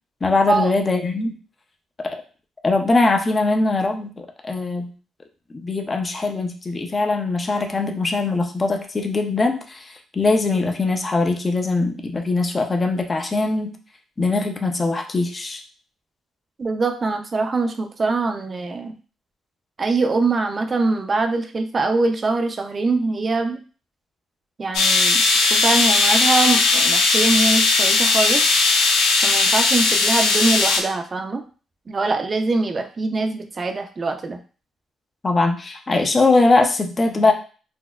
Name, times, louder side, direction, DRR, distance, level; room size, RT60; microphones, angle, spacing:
voice 1, 0.2-1.3 2.6-4.9 5.5-13.7 14.2-15.6 35.2-37.3, left 3 dB, 30° left, 4 dB, 0.5 m, -21 dB
voice 2, 16.6-18.9 19.8-23.6 24.6-25.2 25.5-28.5 29.2-31.4 31.9-34.4, right 3 dB, 35° right, 6 dB, 0.5 m, -23 dB
sound 1, 24.7-30.8, left 3 dB, 85° left, 0.5 m, -17 dB
4.1 x 2.1 x 2.3 m, 0.37 s
cardioid pair, 90°, 0 cm